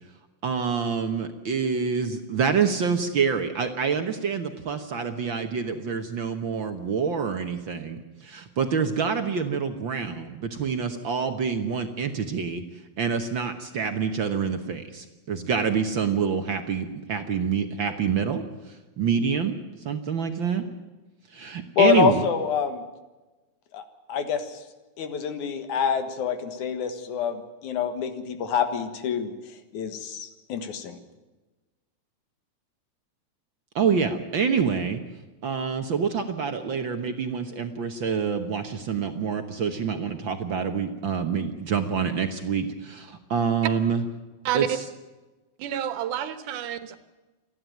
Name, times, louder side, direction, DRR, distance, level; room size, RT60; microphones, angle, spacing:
voice 1, 0.4-12.6 13.0-19.6 19.8-20.7 21.3-22.2 33.7-35.0 35.4-44.0 44.5-44.8, right 6 dB, 55° right, 7 dB, 1.4 m, -27 dB
voice 2, 21.8-22.8 23.7-23.8 24.1-24.6 25.0-29.3 29.7-31.0, left 7 dB, 80° left, 9 dB, 3.0 m, -26 dB
voice 3, 45.6-47.0, right 10 dB, 90° right, 12 dB, 2.7 m, -29 dB
28.5 x 11.0 x 9.3 m, 1.2 s
omnidirectional pair, 3.5 m